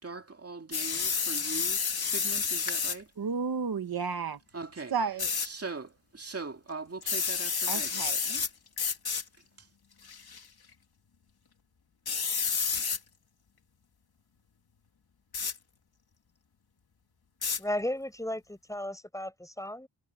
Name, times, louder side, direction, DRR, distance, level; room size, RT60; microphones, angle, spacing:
voice 1, 0.0-1.8 2.1-3.1 4.5-4.9 5.4-8.0 8.3-8.4, right 4 dB, 35° right, 2.4 m, -41 dB
sound 1, 0.7-3.0 5.2-5.5 7.0-8.5 8.8-9.2 10.0-10.4 12.1-13.0 15.3-15.6 17.4-17.6, left 6 dB, 55° left, 2.4 m, -30 dB
voice 2, 3.2-4.4 4.9-5.3 7.7-8.2, right 5 dB, 55° right, 1.5 m, -32 dB
voice 3, 17.6-19.9, left 1 dB, 5° left, 5.7 m, -35 dB
wide cardioid pair, 165°, 43 cm